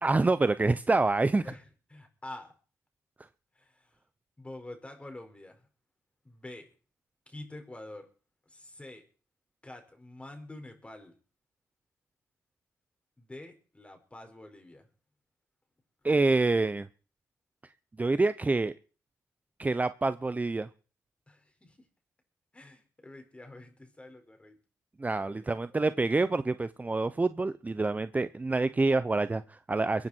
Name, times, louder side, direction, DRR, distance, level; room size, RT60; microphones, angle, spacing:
voice 1, 0.0-1.4 16.0-16.9 18.0-18.7 19.6-20.7 25.0-30.1, right 3 dB, 25° right, 13 dB, 0.9 m, -27 dB
voice 2, 1.4-2.5 3.5-4.0 4.4-5.7 6.2-6.7 7.3-8.1 8.5-9.0 9.6-11.1 13.2-14.9 21.3-21.9 22.5-24.6 25.2-25.9, left 2 dB, 20° left, 5 dB, 5.8 m, -47 dB
23.5 x 9.5 x 4.6 m, 0.39 s
supercardioid pair, 55°, 7 cm